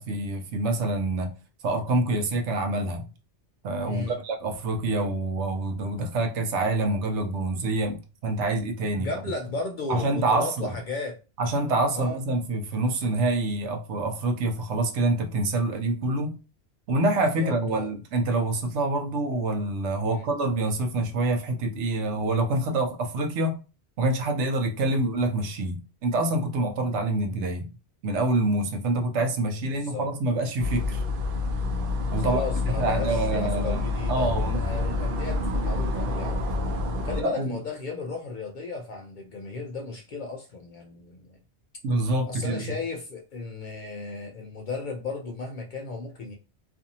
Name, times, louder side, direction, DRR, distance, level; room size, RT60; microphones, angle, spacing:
voice 1, 0.0-1.3 1.6-3.1 3.6-9.1 9.9-10.7 11.4-16.3 16.9-23.6 24.0-27.7 28.0-31.0 32.1-32.4 32.8-33.8 34.1-34.6 37.2-37.5 41.8-42.6, right 2 dB, 85° right, 0.9 m, -26 dB
voice 2, 3.8-4.2 8.9-11.2 11.9-12.2 17.1-17.9 20.0-20.3 24.8-25.0 29.6-30.1 32.1-36.5 37.0-41.4 42.3-46.3, left 3 dB, 60° left, 0.5 m, -35 dB
sound 1, 30.6-37.2, left 2 dB, 60° right, 0.7 m, -28 dB
2.6 x 2.5 x 2.7 m
omnidirectional pair, 1.2 m